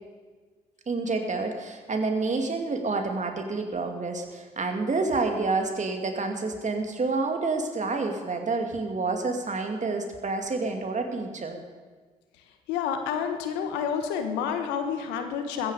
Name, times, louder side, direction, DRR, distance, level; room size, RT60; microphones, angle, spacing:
voice 1, 0.9-11.6, right 3 dB, 45° right, 4 dB, 2.5 m, -28 dB
voice 2, 12.7-15.7, left 7 dB, 85° left, 6 dB, 1.3 m, -29 dB
15.0 x 14.5 x 5.0 m, 1.4 s
hypercardioid pair, 45°, 18 cm